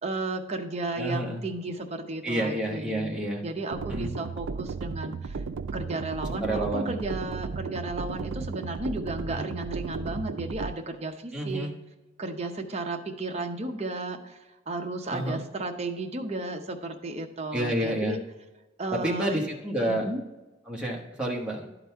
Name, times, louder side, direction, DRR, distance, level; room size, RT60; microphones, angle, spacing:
voice 1, 0.0-3.2 3.4-5.4 5.7-11.7 12.2-18.2 18.8-19.5 19.9-20.2, right 2 dB, 35° right, 4 dB, 0.7 m, -34 dB
voice 2, 1.0-1.4 2.2-3.4 3.9-4.1 6.4-7.0 9.3-9.5 11.3-11.8 15.1-15.4 17.5-18.2 19.0-20.0 20.7-21.7, right 1 dB, 5° right, -2 dB, 1.1 m, -29 dB
sound 1, 3.7-10.7, right 4 dB, 85° right, 0.4 m, -35 dB
11.0 x 4.0 x 4.5 m, 1.1 s
head